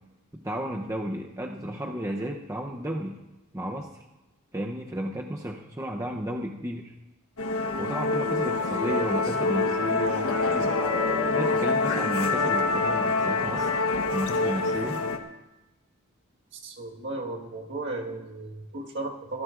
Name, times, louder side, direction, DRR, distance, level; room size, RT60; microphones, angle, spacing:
voice 1, 0.3-3.2 3.5-3.9 4.5-6.9 7.8-10.8 11.3-13.7 14.1-15.0, equal, 15° right, 0 dB, 0.8 m, -33 dB
Musical instrument, 7.4-15.2, left 3 dB, 75° left, 1.3 m, -26 dB
voice 2, 16.5-19.4, right 2 dB, 55° right, 0 dB, 1.7 m, -35 dB
24.5 x 15.0 x 2.6 m, 1.0 s
head